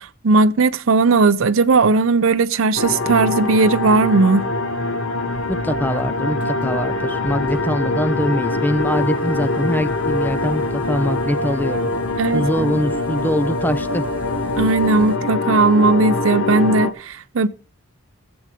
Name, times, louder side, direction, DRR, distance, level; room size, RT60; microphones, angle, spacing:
voice 1, 0.0-4.5 12.2-12.7 14.6-17.5, right 3 dB, 70° right, 0.6 m, -17 dB
sound 1, 2.8-16.9, left 2 dB, 65° left, 1.1 m, -23 dB
sound 2, 5.3-15.2, equal, 10° right, 1.6 m, -42 dB
voice 2, 5.5-11.9 12.3-14.0, equal, 10° left, 0.5 m, -23 dB
15.5 x 7.9 x 5.0 m
head